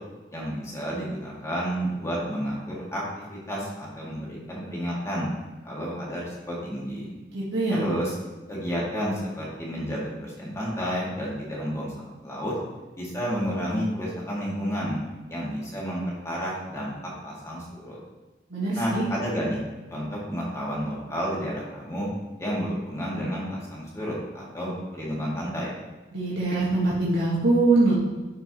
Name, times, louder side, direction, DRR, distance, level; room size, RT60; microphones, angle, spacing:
voice 1, 0.3-3.0 3.3-5.3 5.6-7.1 7.7-8.1 8.5-12.5 13.0-15.0 15.3-16.9 17.2-18.0 18.7-19.6 19.9-22.1 22.4-25.8, equal, 15° left, -5 dB, 1.9 m, -31 dB
voice 2, 7.3-7.8 18.5-19.1 26.1-27.9, right 2 dB, 85° right, -7 dB, 1.6 m, -23 dB
11.0 x 4.6 x 2.9 m, 1.2 s
head